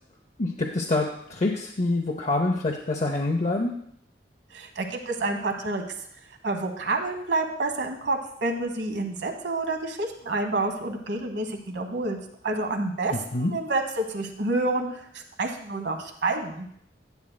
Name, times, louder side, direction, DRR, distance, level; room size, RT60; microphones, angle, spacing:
voice 1, 0.4-3.7 13.1-13.5, left 2 dB, 40° left, 1 dB, 0.6 m, -26 dB
voice 2, 4.5-5.8 6.4-12.2 12.4-16.7, right 2 dB, 75° right, 4 dB, 1.1 m, -28 dB
10.5 x 8.7 x 2.2 m, 0.69 s
head